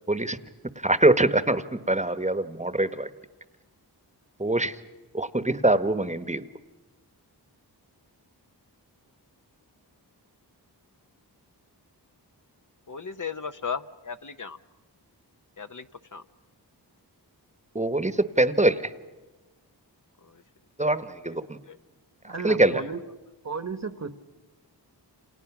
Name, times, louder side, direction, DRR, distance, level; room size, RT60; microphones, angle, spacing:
voice 1, 0.1-0.4 0.8-3.1 4.4-4.8 5.1-6.5 17.7-18.9 20.8-21.6 22.4-22.8, right 2 dB, 15° right, 12 dB, 1.1 m, -23 dB
voice 2, 12.9-14.6 15.6-16.2 20.2-20.4 21.3-21.4 21.6-21.8 22.4-22.5 22.8-22.9, left 6 dB, 45° left, 9 dB, 0.8 m, -36 dB
voice 3, 22.2-23.0 23.4-24.1, right 4 dB, 40° right, 11 dB, 1.2 m, -34 dB
28.5 x 28.0 x 6.0 m, 1.2 s
wide cardioid pair, 60°, 42 cm